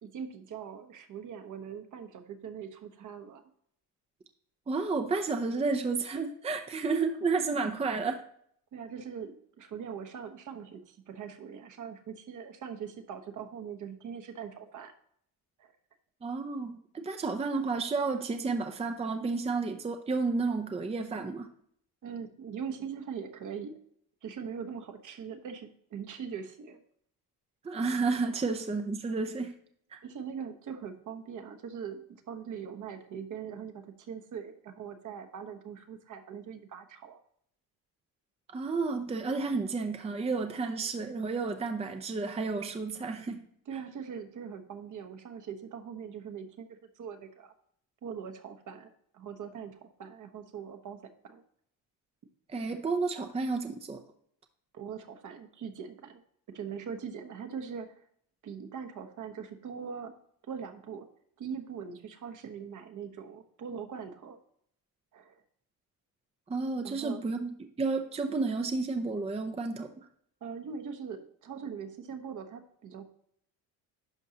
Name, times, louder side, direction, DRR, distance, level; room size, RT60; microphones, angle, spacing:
voice 1, 0.0-3.4 7.6-7.7 8.7-14.9 15.6-15.7 22.0-23.7 24.2-26.8 30.0-37.2 43.7-47.5 48.0-51.4 54.7-56.2 56.5-58.0 58.4-60.1 60.5-61.1 61.4-64.4 65.1-65.4 66.8-67.2 70.4-73.1, right 7 dB, 50° right, 6 dB, 1.1 m, -41 dB
voice 2, 4.7-8.1 16.2-21.5 27.6-29.5 29.9-30.0 38.5-43.5 43.7-43.8 52.5-54.0 66.5-67.5 67.8-69.9, right 4 dB, 15° right, 6 dB, 0.6 m, -31 dB
11.0 x 5.3 x 2.9 m, 0.67 s
cardioid pair, 95°, 39 cm